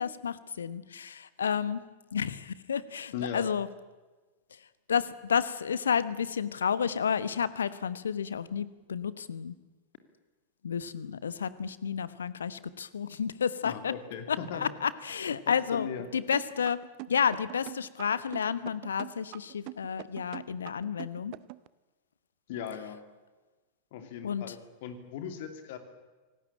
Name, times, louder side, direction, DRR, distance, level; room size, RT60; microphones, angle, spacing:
voice 1, 0.0-1.8 2.1-3.7 4.9-9.5 10.6-13.9 14.3-15.9 16.1-21.3 24.2-24.4, left 7 dB, 70° left, 16 dB, 1.2 m, -31 dB
voice 2, 3.1-3.5 13.6-14.7 15.5-16.1 22.5-23.0 23.9-25.8, left 8 dB, 50° left, 8 dB, 2.7 m, -38 dB
sound 1, 16.3-21.7, right 24 dB, 45° right, 0.8 m, -43 dB
26.5 x 19.0 x 8.9 m, 1.2 s
figure-of-eight pair, 90°, 0 cm